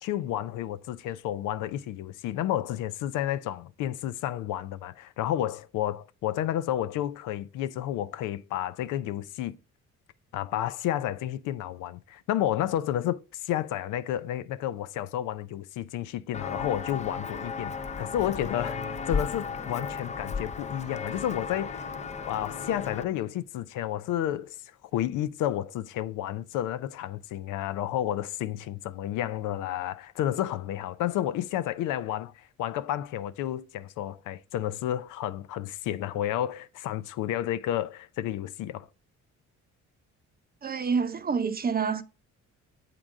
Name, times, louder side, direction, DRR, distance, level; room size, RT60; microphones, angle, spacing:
voice 1, 0.0-9.6 10.3-21.9 22.2-24.6 24.9-38.9, left 12 dB, 90° left, 0.5 m, -31 dB
Walk footsteps, 16.3-23.0, left 5 dB, 25° left, 0.5 m, -34 dB
voice 2, 40.6-42.0, right 5 dB, 30° right, 0.7 m, -27 dB
7.6 x 3.8 x 4.7 m
cardioid pair, 90°, 30 cm